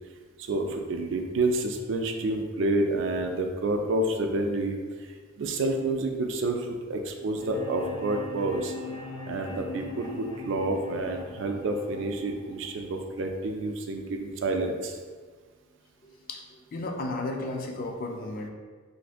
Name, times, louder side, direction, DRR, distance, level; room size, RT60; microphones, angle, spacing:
voice 1, 0.4-4.8 5.4-8.7 9.3-15.0, right 2 dB, 60° right, 4 dB, 0.3 m, -29 dB
sound 1, 7.4-13.4, left 3 dB, 85° left, 0.6 m, -41 dB
voice 2, 16.0-18.5, left 2 dB, 45° left, 2 dB, 0.3 m, -34 dB
2.6 x 2.4 x 3.4 m, 1.5 s
head